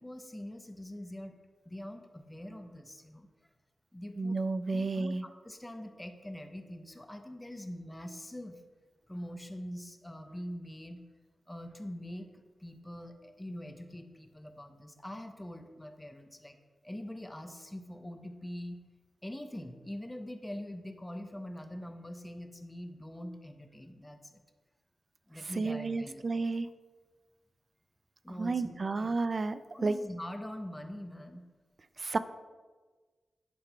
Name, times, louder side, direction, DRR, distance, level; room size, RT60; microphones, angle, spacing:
voice 1, 0.0-1.4 1.6-3.3 3.9-4.4 4.7-8.6 9.1-11.0 11.5-12.3 12.6-16.6 16.8-18.8 19.2-24.4 25.3-26.4 28.2-29.2 29.7-31.4, left 1 dB, 10° left, 7 dB, 0.7 m, -43 dB
voice 2, 4.2-5.2 25.6-26.7 28.4-30.0 32.0-32.2, right 3 dB, 45° right, 13 dB, 0.4 m, -31 dB
10.0 x 3.8 x 4.5 m, 1.4 s
cardioid pair, 80°, 0 cm